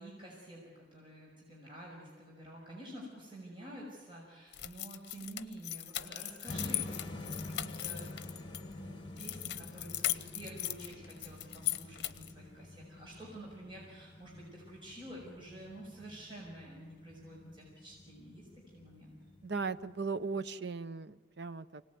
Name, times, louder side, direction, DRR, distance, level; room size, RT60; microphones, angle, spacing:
voice 1, 0.0-8.1 8.5-19.2, right 1 dB, 25° right, -4 dB, 5.7 m, -49 dB
sound 1, 4.5-8.6 9.2-12.4, left 14 dB, 60° left, 0.9 m, -38 dB
sound 2, 6.5-20.4, left 2 dB, 25° left, 2.0 m, -48 dB
voice 2, 19.4-21.8, right 4 dB, 60° right, 14 dB, 0.8 m, -37 dB
25.0 x 18.5 x 9.4 m, 1.5 s
head